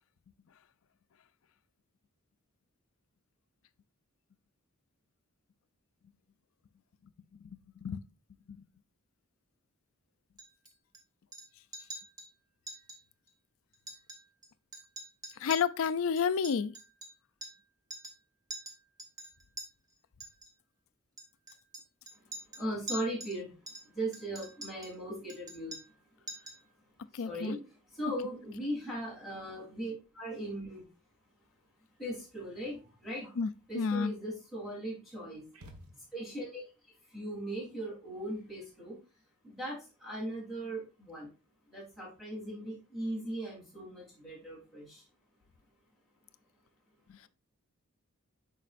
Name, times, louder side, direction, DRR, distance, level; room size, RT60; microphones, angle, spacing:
voice 1, 7.3-8.0 8.5-8.6 15.4-16.7 27.1-27.6 28.0-28.1 33.4-34.1 47.1-47.3, left 6 dB, 65° left, 0.4 m, -31 dB
Chink clink, 10.4-11.0 11.3-11.5 11.7-12.3 12.7-13.0 13.3-13.4 13.7-14.5 14.7-17.7 17.9-18.2 18.5-19.7 20.2-20.5 21.2-23.4 23.7-25.0 25.3-26.0 26.3-26.7, right 1 dB, 15° right, 1.1 m, -46 dB
voice 2, 22.6-23.5 23.9-25.7 27.2-27.6 28.0-30.8 32.0-33.3 33.7-35.4 36.1-36.6 37.1-38.9 39.4-41.3 41.7-44.8, right 1 dB, ahead, 3.3 m, -38 dB
sound 1, 35.5-36.6, equal, 80° right, 1.2 m, -53 dB
8.2 x 5.3 x 2.5 m
head